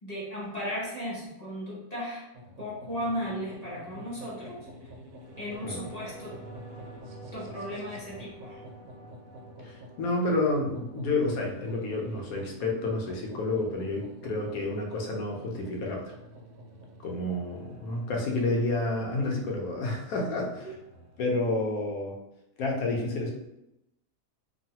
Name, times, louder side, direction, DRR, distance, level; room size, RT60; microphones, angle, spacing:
voice 1, 0.0-2.2 2.6-4.7 5.4-6.4 7.3-8.6 20.2-20.3 20.6-20.7, equal, 40° left, -7 dB, 0.6 m, -36 dB
sound 1, 2.3-21.2, equal, 85° right, 1.2 m, -49 dB
sound 2, 5.1-14.2 14.5-14.6, right 2 dB, 50° right, 1.0 m, -49 dB
voice 2, 9.6-16.1 17.0-20.7 21.2-22.2 22.6-23.3, left 2 dB, 70° left, 0 dB, 1.0 m, -30 dB
3.1 x 2.3 x 2.8 m, 0.88 s
omnidirectional pair, 1.8 m